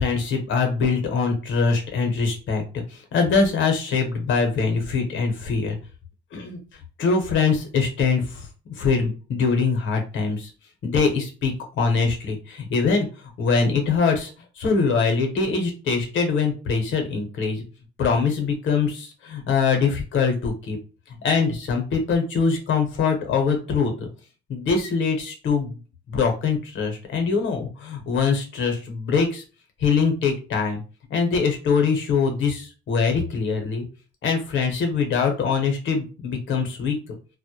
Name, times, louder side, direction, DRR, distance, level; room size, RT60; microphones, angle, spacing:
voice 1, 0.0-2.6 2.9-5.8 6.3-6.6 7.0-8.5 8.8-10.5 10.8-14.3 14.6-17.6 18.0-20.8 21.2-24.1 24.5-25.8 26.1-29.4 29.8-30.8 31.1-33.8 34.2-37.0, left 5 dB, 70° left, 4 dB, 0.8 m, -23 dB
2.1 x 2.0 x 2.8 m, 0.34 s
cardioid pair, 90°, 20 cm